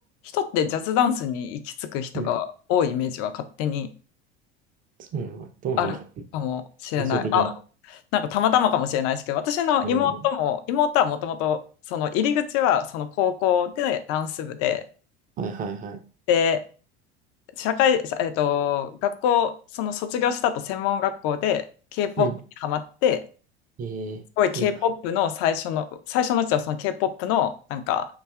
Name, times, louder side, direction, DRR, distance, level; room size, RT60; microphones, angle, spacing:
voice 1, 0.3-3.9 5.8-6.0 6.3-7.5 8.1-11.6 11.9-14.8 16.3-16.6 17.6-21.6 21.9-22.3 22.6-23.2 24.4-28.1, left 9 dB, 45° left, 11 dB, 0.4 m, -24 dB
voice 2, 5.0-6.0 7.0-7.5 9.8-10.2 15.4-16.0 22.2-22.4 23.8-24.2 24.5-24.7, right 5 dB, 25° right, 7 dB, 0.4 m, -31 dB
2.6 x 2.3 x 2.2 m, 0.38 s
hypercardioid pair, 70°, 33 cm